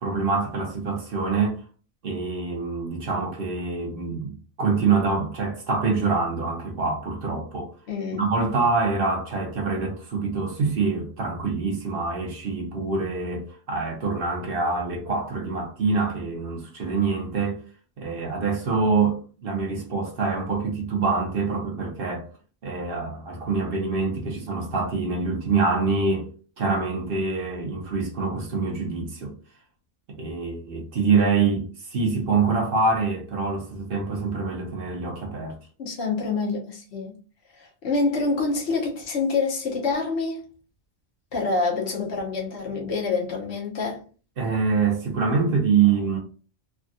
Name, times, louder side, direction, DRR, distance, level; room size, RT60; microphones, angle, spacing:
voice 1, 0.0-1.6 2.0-7.7 8.2-17.6 18.0-22.3 22.6-26.3 26.6-29.3 30.2-35.6 44.4-46.2, right 4 dB, 55° right, 1.0 m, -25 dB
voice 2, 7.9-8.2 35.8-37.1 37.6-40.4 41.3-44.0, left 4 dB, 70° left, 1.1 m, -26 dB
3.4 x 2.2 x 2.6 m
omnidirectional pair, 1.1 m